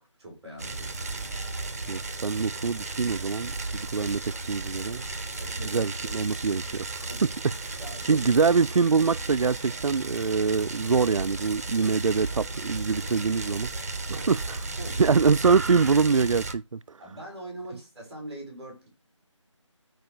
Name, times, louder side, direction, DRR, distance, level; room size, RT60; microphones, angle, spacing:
voice 1, 0.0-1.5 5.4-5.9 7.1-7.2 7.8-8.2 14.1-14.3 14.8-15.1 17.0-18.9, right 1 dB, 5° right, 3.5 m, -42 dB
sound 1, 0.6-16.5, right 3 dB, 30° right, 1.4 m, -34 dB
voice 2, 1.9-5.0 5.7-7.1 8.1-13.7 14.1-14.6 15.0-17.0, right 5 dB, 85° right, 0.4 m, -24 dB
9.3 x 4.9 x 6.1 m
figure-of-eight pair, 175°, 16 cm